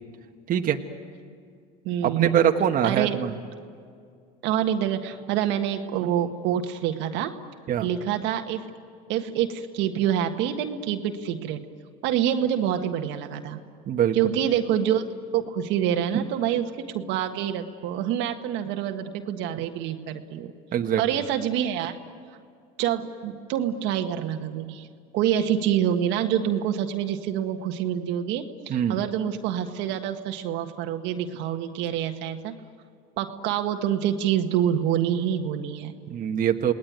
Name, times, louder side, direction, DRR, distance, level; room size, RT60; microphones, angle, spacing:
voice 1, 0.5-0.8 2.0-3.3 7.7-7.9 13.9-14.2 16.1-16.2 20.7-21.0 28.7-29.0 36.1-36.7, right 9 dB, 45° right, 4 dB, 1.5 m, -23 dB
voice 2, 1.8-2.4 2.8-3.2 4.4-7.3 7.8-8.7 9.1-11.7 12.0-13.6 14.1-15.1 15.3-16.7 16.9-20.5 21.0-22.0 22.8-24.9 25.1-32.6 33.2-35.9, right 10 dB, 65° right, 5 dB, 1.6 m, -26 dB
28.0 x 19.0 x 9.5 m, 2.2 s
supercardioid pair, 95°, 20 cm